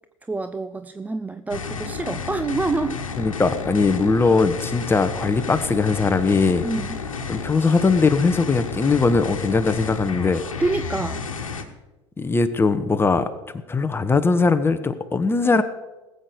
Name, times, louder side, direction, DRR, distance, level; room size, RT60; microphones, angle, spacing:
voice 1, 0.3-3.0 6.6-7.0 10.6-11.3, right 3 dB, 10° right, 11 dB, 0.5 m, -27 dB
sound 1, 1.5-11.6, left 5 dB, 80° left, 1.3 m, -31 dB
voice 2, 3.2-6.6 7.3-10.4 12.2-13.3 13.7-15.6, left 4 dB, 15° left, 9 dB, 1.0 m, -20 dB
19.5 x 8.0 x 5.2 m, 1.1 s
figure-of-eight pair, 75°, 17 cm